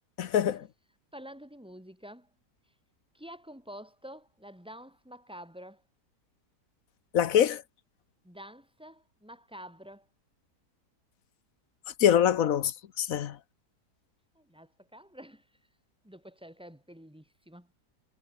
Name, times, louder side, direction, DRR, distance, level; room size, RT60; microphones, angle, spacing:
voice 1, 0.2-0.7 7.1-7.6 12.0-13.4, left 9 dB, 60° left, 1.2 m, -24 dB
voice 2, 1.1-2.3 3.1-5.8 8.2-10.1 14.4-15.5 16.0-17.7, equal, 5° right, 5.5 m, -48 dB
omnidirectional pair, 1.8 m